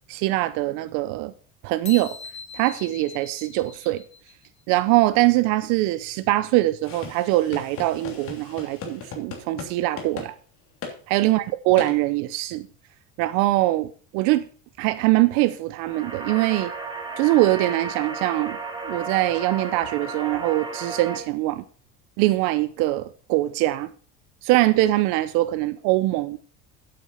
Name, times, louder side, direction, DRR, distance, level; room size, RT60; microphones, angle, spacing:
voice 1, 0.1-1.3 1.6-2.2 2.5-4.0 4.7-10.3 11.1-12.7 13.2-14.5 14.8-16.7 17.2-18.6 18.8-21.6 22.2-23.9 24.4-26.4, right 17 dB, 70° right, 0.7 m, -22 dB
sound 1, 1.9-4.5, left 5 dB, 20° left, 0.8 m, -40 dB
sound 2, 6.8-9.7 10.0-10.3 10.8-11.0 11.8-11.9, left 5 dB, 45° left, 2.9 m, -37 dB
sound 3, 15.8-21.2, right 4 dB, 15° right, 2.3 m, -33 dB
8.6 x 7.8 x 5.5 m
supercardioid pair, 120°, 32 cm